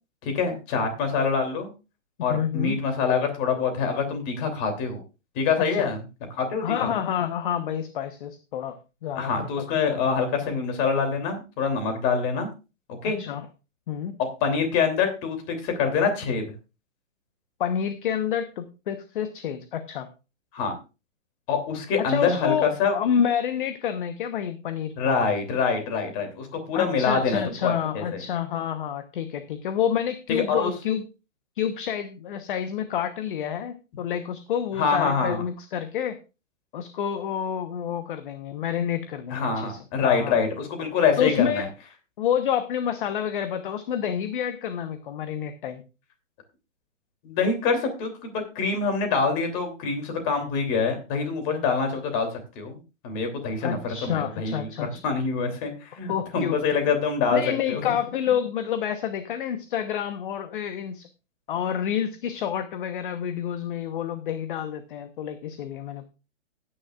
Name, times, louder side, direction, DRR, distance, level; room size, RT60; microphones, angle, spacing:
voice 1, 0.2-1.7 2.2-5.0 5.3-6.0 6.3-6.9 9.2-12.5 13.0-13.2 14.4-16.4 20.5-20.8 21.5-22.9 25.0-28.0 30.5-30.7 34.8-35.4 39.3-41.7 47.2-52.3 52.5-57.4 57.7-57.8, left 5 dB, 25° left, 6 dB, 3.0 m, -25 dB
voice 2, 2.3-2.8 5.6-5.9 6.6-8.8 9.0-10.0 13.2-13.5 13.9-14.2 17.6-20.1 22.0-25.2 26.7-31.0 31.6-36.2 36.7-40.4 41.2-41.7 42.2-45.8 53.6-55.0 56.1-56.8 57.3-61.1 61.5-66.1, left 9 dB, 40° left, 9 dB, 1.1 m, -28 dB
16.0 x 9.8 x 2.4 m, 0.30 s
hypercardioid pair, 160°, 38 cm